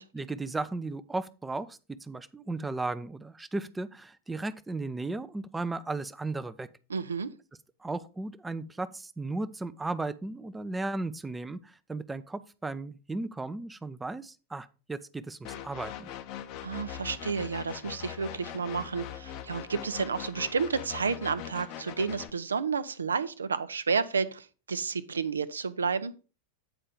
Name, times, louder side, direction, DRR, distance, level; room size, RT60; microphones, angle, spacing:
voice 1, 0.1-6.7 7.8-16.1, right 2 dB, 10° right, 0.5 m, -35 dB
voice 2, 6.9-7.3 16.6-26.1, right 5 dB, 70° right, 0.5 m, -31 dB
sound 1, 15.4-22.3, left 11 dB, 45° left, 0.7 m, -41 dB
8.8 x 4.4 x 5.0 m
figure-of-eight pair, 90°, 0 cm